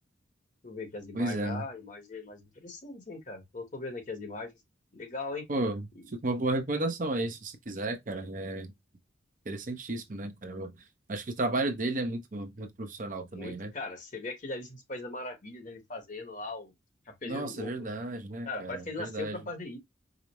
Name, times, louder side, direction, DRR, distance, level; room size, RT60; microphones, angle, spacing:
voice 1, 0.6-4.5 4.9-5.4 6.0-6.1 13.3-16.7 17.1-17.9 18.4-19.8, left 2 dB, 40° left, 1.1 m, -39 dB
voice 2, 1.1-1.6 5.5-8.7 9.5-10.7 11.1-13.7 17.3-19.4, right 2 dB, 45° right, 0.6 m, -33 dB
5.0 x 2.0 x 2.9 m
head